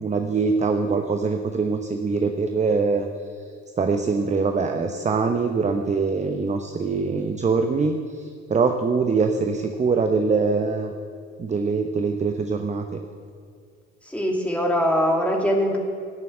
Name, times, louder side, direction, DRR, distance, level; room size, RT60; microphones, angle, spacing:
voice 1, 0.0-3.1 3.8-10.9 11.4-13.0, right 4 dB, 15° right, 6 dB, 1.0 m, -23 dB
voice 2, 14.1-15.8, equal, 5° left, 0 dB, 2.8 m, -22 dB
16.0 x 7.5 x 8.7 m, 2.1 s
figure-of-eight pair, 60°, 39 cm